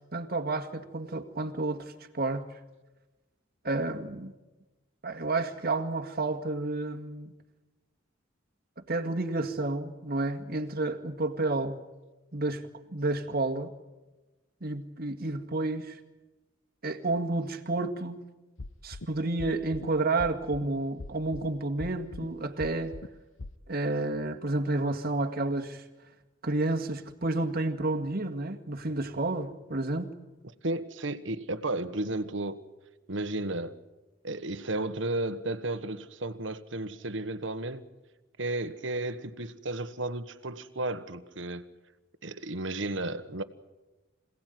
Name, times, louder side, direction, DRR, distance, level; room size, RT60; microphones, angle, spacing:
voice 1, 0.1-2.4 3.6-4.3 5.0-7.3 8.9-11.8 12.3-12.6 12.9-13.7 14.6-16.0 16.8-18.2 18.8-22.9 23.7-25.8 26.4-30.1, right 2 dB, 50° right, 2.0 m, -30 dB
sound 1, 18.6-19.1 19.4-19.9 20.2-20.7 21.0-21.5 21.8-22.3 22.6-23.1 23.4-23.5, left 2 dB, 85° left, 0.9 m, -40 dB
voice 2, 30.6-32.7 33.1-33.8 34.2-37.8 38.4-41.6 42.2-43.4, right 2 dB, 70° right, 1.4 m, -33 dB
26.5 x 18.0 x 9.4 m
head